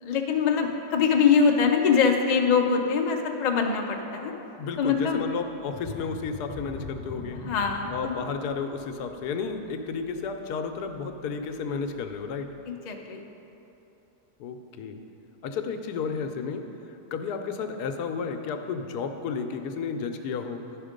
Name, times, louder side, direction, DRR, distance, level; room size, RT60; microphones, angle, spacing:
voice 1, 0.0-4.3 4.8-5.2 7.4-8.2 12.7-13.2, left 6 dB, 60° left, 2 dB, 0.4 m, -23 dB
voice 2, 4.6-7.4 7.9-12.5 14.4-15.0 15.4-16.6 17.1-20.6, left 5 dB, 80° left, 6 dB, 1.2 m, -32 dB
sound 1, 5.7-11.1 11.6-11.7 12.2-12.3, left 2 dB, 10° left, 1.4 m, -42 dB
11.0 x 5.2 x 5.1 m, 3.0 s
omnidirectional pair, 1.7 m